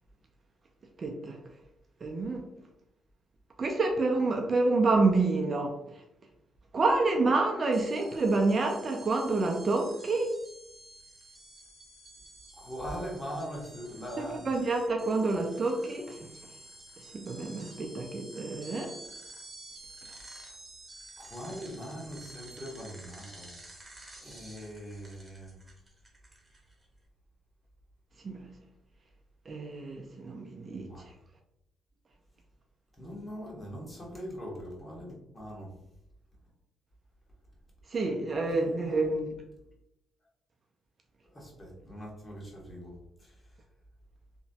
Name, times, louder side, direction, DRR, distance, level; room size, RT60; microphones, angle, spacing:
voice 1, 1.0-1.4 2.0-2.4 3.6-5.8 6.7-10.3 14.2-16.3 17.1-18.9 28.2-28.5 29.5-30.9 37.9-39.3, right 3 dB, 40° right, 2 dB, 0.4 m, -28 dB
sound 1, 7.7-26.9, right 1 dB, 15° right, 0.9 m, -51 dB
voice 2, 12.6-14.5 21.2-23.5 24.2-25.5 30.7-31.1 33.0-35.7 38.5-39.0 41.3-42.9 43.2-43.3, equal, 20° left, -4 dB, 1.2 m, -41 dB
2.9 x 2.1 x 2.7 m, 0.83 s
cardioid pair, 90°, 0 cm